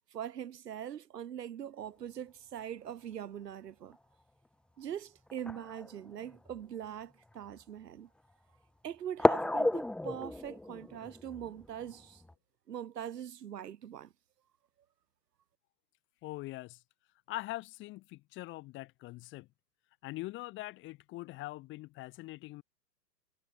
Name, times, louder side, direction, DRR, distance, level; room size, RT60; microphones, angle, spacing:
voice 1, 0.1-4.0 4.8-8.1 8.8-12.2 12.7-14.1, right 9 dB, 70° right, 1.6 m, -42 dB
sound 1, 3.9-4.0 5.3-6.6 7.3-7.4 9.2-12.3, left 1 dB, ahead, 0.7 m, -33 dB
voice 2, 16.2-16.8 17.3-19.5 20.0-22.6, left 19 dB, 25° left, 1.0 m, -42 dB
figure-of-eight pair, 115°, 50 cm